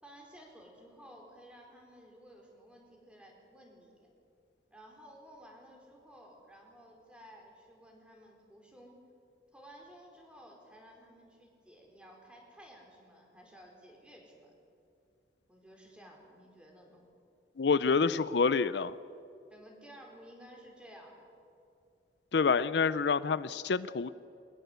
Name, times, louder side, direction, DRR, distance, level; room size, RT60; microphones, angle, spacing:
voice 1, 0.0-4.1 4.7-9.0 9.5-14.5 15.5-17.1 19.5-21.3, equal, 5° right, 0 dB, 4.6 m, -55 dB
voice 2, 17.6-18.9 22.3-24.1, left 5 dB, 70° left, 15 dB, 0.5 m, -27 dB
22.5 x 20.5 x 8.1 m, 2.6 s
head